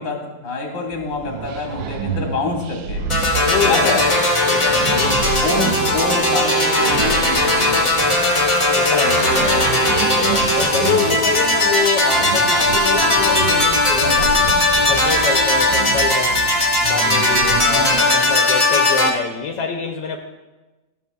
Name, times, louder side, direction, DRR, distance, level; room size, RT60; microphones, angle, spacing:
voice 1, 0.0-3.0 3.6-4.0 4.9-7.9, left 3 dB, 50° left, 1 dB, 1.7 m, -26 dB
sound 1, 0.9-18.3, right 7 dB, 75° right, 1.1 m, -29 dB
sound 2, 3.1-19.1, left 2 dB, 20° left, 0.9 m, -18 dB
voice 2, 3.4-5.4 8.7-14.6 14.9-16.5 16.9-20.2, left 6 dB, 80° left, 3 dB, 1.3 m, -26 dB
13.5 x 6.7 x 2.3 m, 1.1 s
omnidirectional pair, 1.9 m